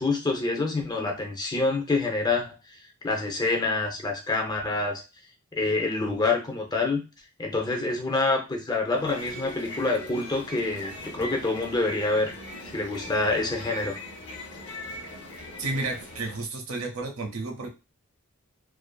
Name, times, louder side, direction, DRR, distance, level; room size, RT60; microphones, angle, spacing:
voice 1, 0.0-2.8 3.0-5.0 5.5-7.0 7.4-12.4 12.7-14.0, left 3 dB, 20° left, 2 dB, 0.5 m, -27 dB
sound 1, 8.9-16.5, left 1 dB, 55° left, 0.7 m, -40 dB
voice 2, 15.6-17.7, right 3 dB, 80° right, 4 dB, 0.7 m, -32 dB
2.6 x 2.5 x 2.2 m, 0.29 s
head